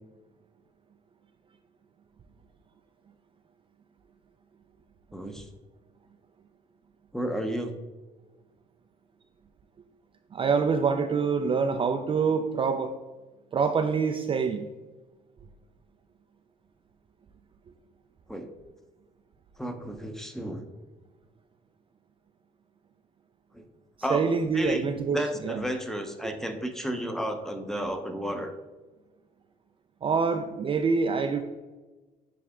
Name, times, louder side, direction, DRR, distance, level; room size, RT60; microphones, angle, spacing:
voice 1, 5.1-5.5 7.1-7.8 18.3-18.5 19.6-20.6 23.5-23.6 24.0-28.5, equal, ahead, 6 dB, 0.7 m, -32 dB
voice 2, 10.3-12.9 13.5-14.7 24.1-25.2 25.4-25.6 30.0-31.4, right 5 dB, 30° right, 6 dB, 0.4 m, -25 dB
9.4 x 3.4 x 3.6 m, 1.2 s
cardioid pair, 110°, 17 cm